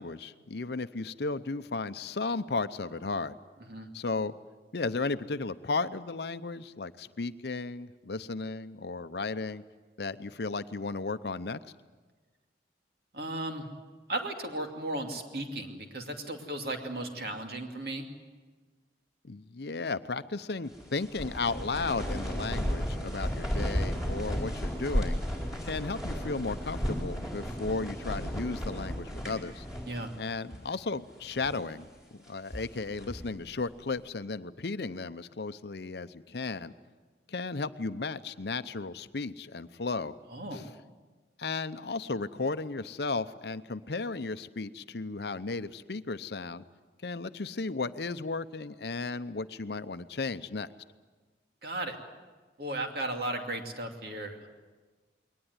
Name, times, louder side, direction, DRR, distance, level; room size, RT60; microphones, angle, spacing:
voice 1, 0.0-3.4 3.9-4.3 4.7-9.6 10.0-11.6 19.2-25.2 25.6-29.6 30.2-31.9 32.1-36.7 37.3-40.2 40.5-40.8 41.4-46.6 47.0-50.7, left 3 dB, 65° left, 13 dB, 0.7 m, -34 dB
voice 2, 13.1-13.7 14.1-18.1 29.9-30.1 40.3-40.6 51.6-52.0 52.6-54.5, right 1 dB, 55° right, 3 dB, 2.6 m, -35 dB
sound 1, 20.7-30.2 30.5-30.6 31.2-31.7 32.2-33.3, equal, 5° right, 4.6 m, -34 dB
22.0 x 19.0 x 9.7 m, 1.3 s
head